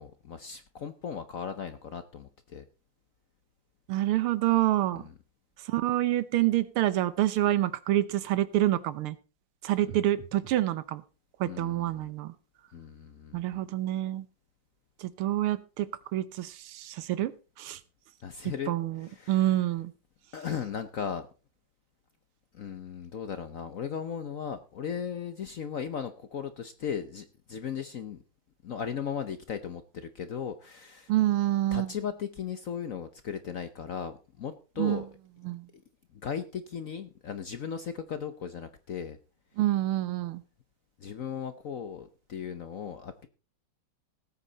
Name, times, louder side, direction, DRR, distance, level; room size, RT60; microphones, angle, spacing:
voice 1, 0.0-2.6 4.9-5.1 9.9-10.0 11.4-12.1 12.7-13.6 18.2-18.7 19.0-19.6 20.3-21.3 22.5-28.2 28.6-31.1 31.7-35.1 36.1-39.2 41.0-43.3, left 7 dB, 60° left, 11 dB, 0.9 m, -37 dB
voice 2, 3.9-5.0 5.7-9.2 9.6-11.0 11.4-12.3 13.3-14.3 15.0-17.8 18.7-19.9 31.1-31.9 34.8-35.0 35.4-35.7 39.6-40.4, right 14 dB, 90° right, 16 dB, 1.8 m, -27 dB
19.0 x 8.4 x 4.0 m, 0.32 s
omnidirectional pair, 2.3 m